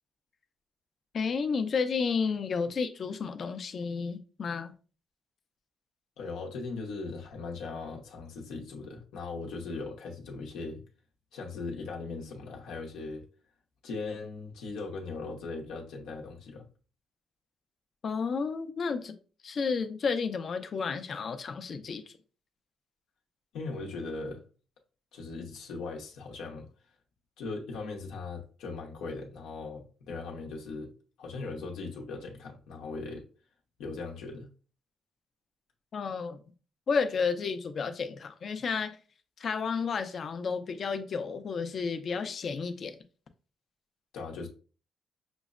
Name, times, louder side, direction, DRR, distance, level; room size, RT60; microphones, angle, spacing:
voice 1, 1.1-4.8 18.0-19.1 19.4-22.1 35.9-36.4 36.9-39.0 39.4-43.0, left 5 dB, 50° left, 0.5 m, -31 dB
voice 2, 6.2-10.8 11.3-13.2 13.8-16.7 23.5-24.4 25.1-26.7 27.4-30.9 31.2-33.2 33.8-34.5 44.1-44.5, left 3 dB, 85° left, 0.7 m, -39 dB
6.0 x 2.1 x 2.4 m
cardioid pair, 90°, 0 cm